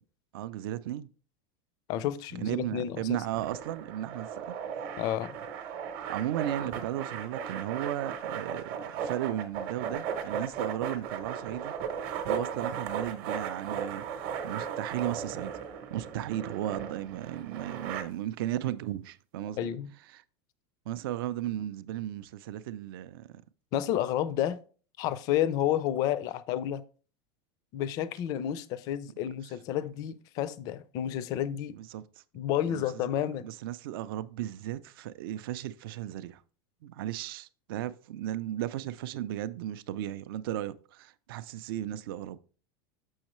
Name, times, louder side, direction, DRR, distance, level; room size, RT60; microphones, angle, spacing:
voice 1, 0.3-1.1 2.4-4.3 6.1-11.7 12.2-15.5 15.9-19.7 20.1-20.2 20.9-23.3 31.7-32.0 32.6-33.0 33.4-36.4 36.8-42.4, right 12 dB, 65° right, 0.4 m, -35 dB
voice 2, 1.9-3.2 5.0-5.4 19.6-19.9 23.7-24.6 25.0-26.8 27.7-31.8 32.3-33.5, left 11 dB, 30° left, 0.3 m, -30 dB
sound 1, 3.3-18.0, right 7 dB, 40° right, 0.8 m, -36 dB
6.4 x 6.3 x 3.0 m
supercardioid pair, 180°, 13 cm